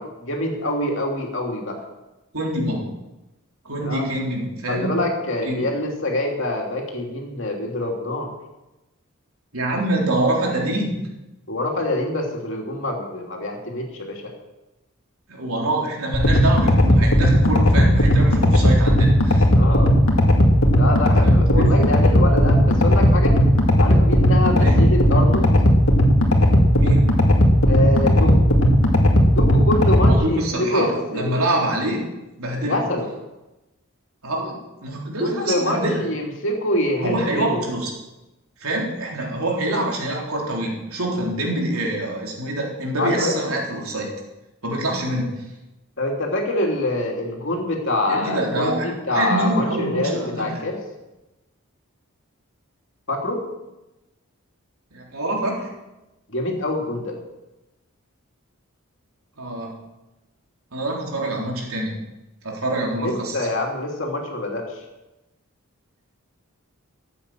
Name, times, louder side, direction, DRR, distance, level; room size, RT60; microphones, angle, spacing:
voice 1, 0.0-1.8 3.8-4.0 4.7-8.3 11.5-14.2 19.6-19.9 20.7-23.4 23.8-25.5 27.6-28.5 29.3-31.4 32.6-33.1 35.2-37.6 43.0-43.4 46.0-50.8 53.1-53.4 56.3-57.2 63.0-64.8, left 1 dB, 55° left, 0 dB, 3.0 m, -25 dB
voice 2, 2.3-2.9 3.6-5.0 5.5-5.6 9.5-11.0 15.3-19.4 21.2-21.8 24.6-24.9 26.8-27.1 30.0-32.0 32.4-32.8 34.2-36.0 37.0-37.9 38.6-44.1 44.6-45.5 48.1-50.6 54.9-55.7 59.4-59.7 60.7-62.0 62.4-63.5, right 1 dB, 75° right, -2 dB, 3.7 m, -25 dB
sound 1, 16.1-30.1, equal, 75° left, 2.1 m, -16 dB
14.0 x 8.8 x 7.6 m, 1.0 s
head